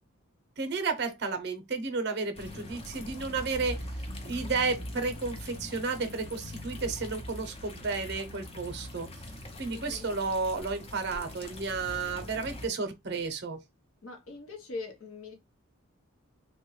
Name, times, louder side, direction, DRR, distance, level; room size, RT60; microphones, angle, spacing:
voice 1, 0.6-3.9 4.2-9.1 9.6-13.6, right 4 dB, 50° right, 0.6 m, -32 dB
sound 1, 2.3-12.7, left 1 dB, 25° left, 0.5 m, -42 dB
voice 2, 9.7-10.0 14.0-15.3, left 3 dB, 80° left, 0.9 m, -41 dB
3.1 x 2.2 x 3.1 m
head